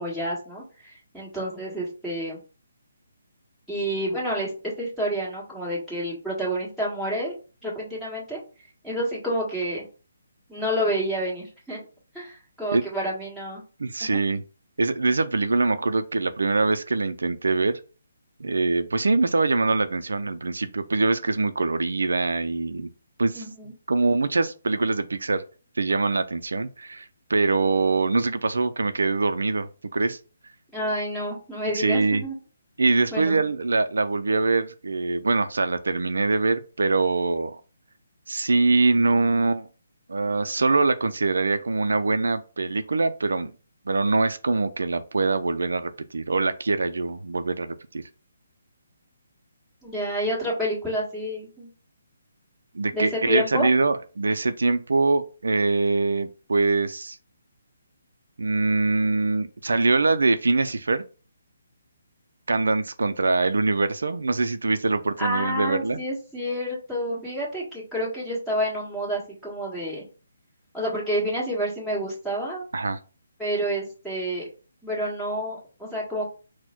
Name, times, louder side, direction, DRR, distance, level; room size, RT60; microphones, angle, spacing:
voice 1, 0.0-2.4 3.7-7.3 7.6-8.4 8.8-9.8 10.5-11.8 12.1-13.6 14.0-14.2 23.3-23.7 30.7-32.3 33.1-33.3 49.8-51.7 52.9-53.7 65.2-70.0 70.7-72.6 73.4-74.5 74.8-76.3, equal, ahead, 1.6 m, -29 dB
voice 2, 13.8-14.4 14.8-17.8 18.4-22.9 23.2-23.5 23.9-25.4 25.8-30.2 31.7-32.2 32.8-37.6 38.3-39.7 40.1-43.5 43.9-48.0 52.7-57.2 58.4-61.0 62.5-66.0 72.7-73.0, right 3 dB, 85° right, 0.4 m, -23 dB
4.2 x 2.1 x 4.4 m
hypercardioid pair, 160°, 0 cm